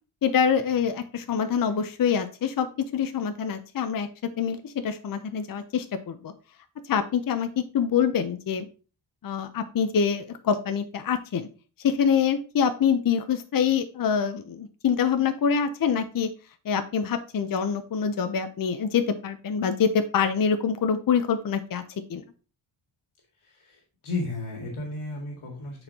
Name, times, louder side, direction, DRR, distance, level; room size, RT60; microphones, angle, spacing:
voice 1, 0.2-4.1 4.4-6.3 6.9-8.7 9.2-11.5 11.8-16.3 16.6-21.8 22.1-22.2, left 7 dB, 45° left, 9 dB, 0.6 m, -25 dB
voice 2, 23.4-25.8, left 2 dB, 85° left, 0 dB, 2.0 m, -34 dB
9.8 x 4.4 x 2.8 m, 0.35 s
wide cardioid pair, 150°, 48 cm